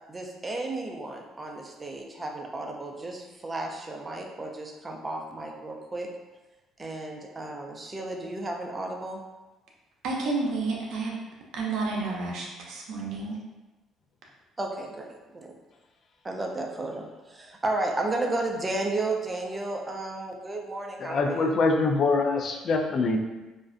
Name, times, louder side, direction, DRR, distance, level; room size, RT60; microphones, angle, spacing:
voice 1, 0.1-6.1 6.8-9.2 14.6-15.5 16.2-21.5, right 2 dB, 25° right, 2 dB, 0.4 m, -33 dB
voice 2, 10.0-11.1 11.5-13.4, right 3 dB, 75° right, -1 dB, 0.5 m, -30 dB
voice 3, 21.0-23.2, left 3 dB, 55° left, 3 dB, 0.3 m, -24 dB
2.4 x 2.1 x 2.4 m, 1.1 s
supercardioid pair, 85°, 0 cm